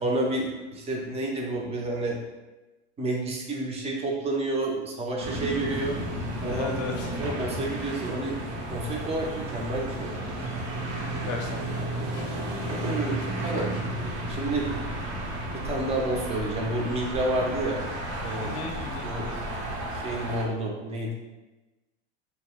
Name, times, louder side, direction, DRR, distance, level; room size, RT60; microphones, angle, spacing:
voice 1, 0.0-2.2 3.0-6.0 6.4-6.7 7.2-8.4 8.7-10.2 12.7-13.7 14.3-14.7 15.5-17.8 18.2-18.6 19.0-19.3 19.9-21.1, right 2 dB, 20° right, -1 dB, 0.4 m, -29 dB
sound 1, 5.2-20.4, right 1 dB, 85° right, 0.7 m, -33 dB
voice 2, 6.5-7.1 11.2-12.3 13.5-13.7 18.4-19.4, left 4 dB, 45° left, 2 dB, 0.5 m, -36 dB
2.7 x 2.0 x 2.8 m, 1.1 s
supercardioid pair, 115°, 33 cm